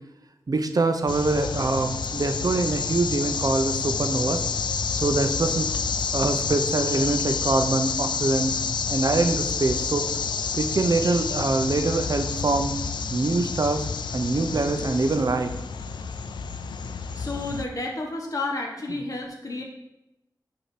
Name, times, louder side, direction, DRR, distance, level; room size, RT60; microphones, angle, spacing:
voice 1, 0.5-4.4 5.0-5.7 6.1-8.5 8.9-10.0 10.6-12.7 13.1-13.9 14.1-15.5, right 3 dB, 55° right, 7 dB, 0.8 m, -24 dB
sound 1, 1.1-17.6, left 5 dB, 90° left, 0.4 m, -29 dB
voice 2, 17.1-19.6, left 2 dB, 50° left, -1 dB, 1.5 m, -31 dB
8.3 x 2.9 x 5.9 m, 0.91 s
cardioid pair, 50°, 8 cm